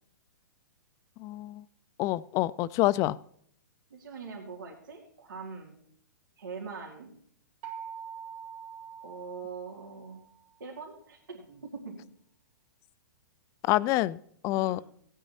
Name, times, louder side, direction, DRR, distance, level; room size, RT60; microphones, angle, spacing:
voice 1, 1.2-1.6 2.0-3.2 13.6-14.8, left 17 dB, 30° left, 18 dB, 0.4 m, -27 dB
voice 2, 3.9-5.8 6.4-7.1 9.0-10.2 10.6-12.1 14.6-14.9, right 5 dB, 85° right, -4 dB, 2.6 m, -42 dB
sound 1, 7.6-10.4, right 7 dB, 40° right, 1.7 m, -44 dB
16.5 x 9.1 x 4.2 m, 0.65 s
hypercardioid pair, 130°, 11 cm